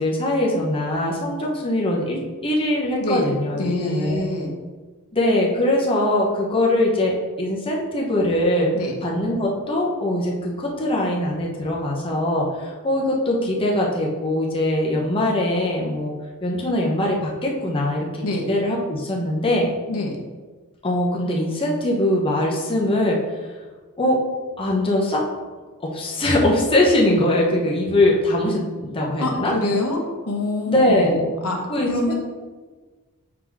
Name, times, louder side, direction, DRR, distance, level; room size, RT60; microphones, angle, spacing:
voice 1, 0.0-4.2 5.1-8.7 9.0-16.1 16.4-18.1 18.5-19.7 20.8-23.2 24.0-24.2 24.6-25.2 25.8-29.5 30.7-31.3 31.7-32.1, left 1 dB, 25° left, -3 dB, 1.0 m, -21 dB
voice 2, 3.6-4.6 8.7-8.9 18.2-18.5 19.9-20.2 29.2-30.0 30.3-31.1 31.4-31.6 31.9-32.1, left 2 dB, 90° left, 1 dB, 1.1 m, -25 dB
4.9 x 4.0 x 4.7 m, 1.3 s
head